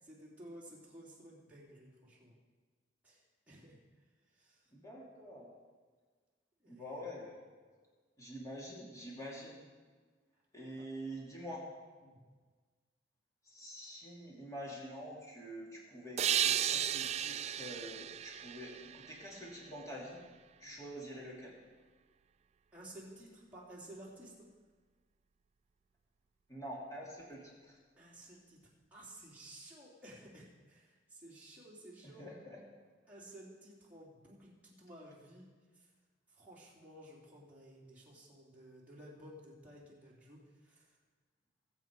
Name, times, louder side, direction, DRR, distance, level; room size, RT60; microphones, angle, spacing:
voice 1, 0.0-2.4 3.0-3.8 4.3-4.7 6.6-7.0 10.8-10.9 12.0-12.3 20.6-20.9 22.7-24.5 28.0-28.6 28.9-32.3 33.1-35.5 35.7-35.9 36.3-40.9, right 1 dB, 10° right, -7 dB, 3.4 m, -54 dB
voice 2, 4.7-5.5 6.7-7.4 8.2-9.6 10.5-11.7 13.5-20.2 20.6-21.5 26.5-27.8 32.0-32.6, equal, 20° left, -4 dB, 2.8 m, -46 dB
sound 1, 16.2-19.7, right 10 dB, 35° right, 0.3 m, -34 dB
21.0 x 8.0 x 4.8 m, 1.4 s
head